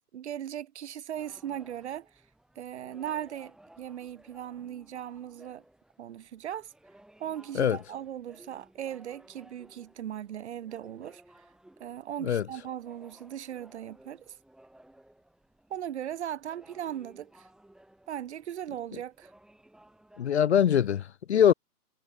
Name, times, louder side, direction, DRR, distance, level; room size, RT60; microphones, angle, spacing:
voice 1, 0.1-2.1 2.6-5.6 6.0-6.7 7.2-11.2 11.8-14.3 15.7-17.5 18.1-19.3, right 10 dB, 45° right, 0.8 m, -38 dB
sound 1, 1.1-20.9, right 1 dB, ahead, 3.3 m, -58 dB
voice 2, 20.2-21.5, left 9 dB, 45° left, 0.5 m, -23 dB
hypercardioid pair, 150°, 46 cm